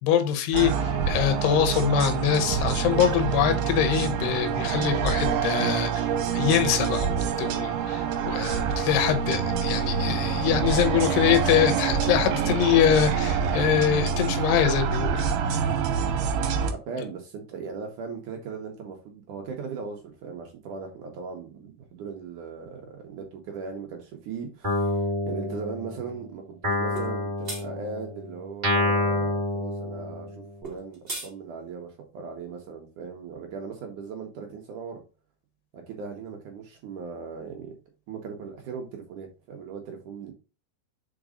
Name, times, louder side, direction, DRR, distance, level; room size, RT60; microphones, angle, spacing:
voice 1, 0.0-6.1 6.3-15.3, left 9 dB, 90° left, 3.0 m, -24 dB
sound 1, 0.5-16.7, right 6 dB, 85° right, 2.9 m, -26 dB
voice 2, 16.6-30.3 30.6-35.0 35.7-37.7 38.1-40.3, right 5 dB, 65° right, 2.1 m, -38 dB
Guitar, 24.6-26.1 26.6-30.5, left 2 dB, 20° right, 1.5 m, -28 dB
sound 2, 26.9-27.1 27.4-27.6 30.6-31.3, right 2 dB, 45° right, 0.7 m, -35 dB
6.1 x 4.6 x 3.7 m
omnidirectional pair, 4.6 m